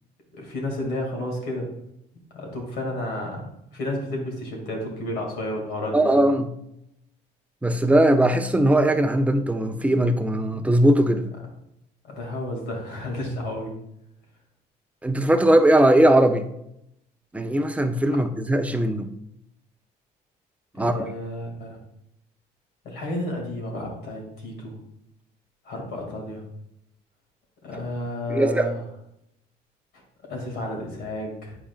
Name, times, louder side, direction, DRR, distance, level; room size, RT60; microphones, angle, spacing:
voice 1, 0.3-1.7 2.3-6.1 12.0-13.8 20.7-21.8 22.8-24.8 25.6-26.4 27.6-28.8 29.9-30.0 30.3-31.6, left 1 dB, 80° left, 2.2 m, -31 dB
voice 2, 5.9-6.5 7.6-11.3 15.0-16.4 17.3-19.1 20.8-20.9 28.3-28.7, right 1 dB, 10° right, 0.5 m, -19 dB
8.8 x 5.0 x 2.4 m
cardioid pair, 110°, 17 cm